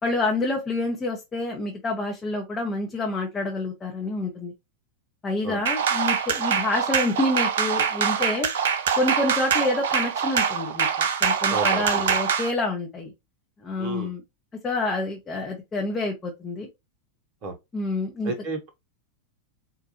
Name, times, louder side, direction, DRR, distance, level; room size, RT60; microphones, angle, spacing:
voice 1, 0.0-4.5 5.2-8.5 8.9-13.1 13.6-14.2 14.6-16.7 17.7-18.3, left 2 dB, 20° left, 0.9 m, -28 dB
sound 1, 5.7-12.5, right 7 dB, 60° right, 0.5 m, -24 dB
voice 2, 11.5-12.1 13.8-14.1 17.4-17.5 18.2-18.7, right 3 dB, 40° right, 0.9 m, -31 dB
4.2 x 2.4 x 2.9 m
figure-of-eight pair, 90°, 0 cm